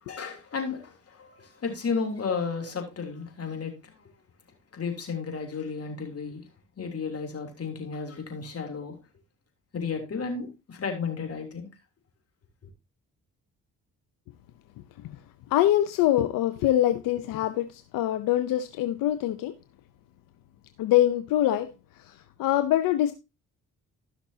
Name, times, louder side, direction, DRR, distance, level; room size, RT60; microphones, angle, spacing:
voice 1, 0.0-4.1 4.7-6.4 6.8-9.0 9.7-11.7, left 5 dB, 45° left, 3.2 m, -33 dB
voice 2, 15.5-19.5 20.8-21.7 22.0-23.1, left 13 dB, 85° left, 0.7 m, -24 dB
15.0 x 6.0 x 2.8 m
cardioid pair, 75°, 32 cm